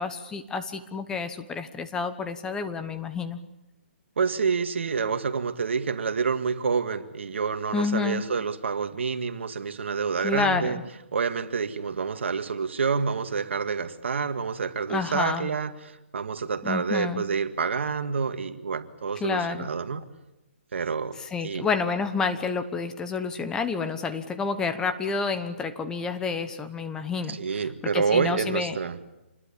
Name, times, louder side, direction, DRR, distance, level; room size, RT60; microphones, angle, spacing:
voice 1, 0.0-3.4 7.7-8.2 10.2-10.7 14.9-15.5 16.6-17.2 19.2-19.7 21.3-28.8, left 5 dB, 10° left, 1.1 m, -29 dB
voice 2, 4.2-10.8 11.1-20.1 20.7-21.2 21.4-21.7 27.3-29.0, right 5 dB, 70° right, 2.0 m, -28 dB
27.0 x 21.0 x 8.7 m
hypercardioid pair, 155°, 7 cm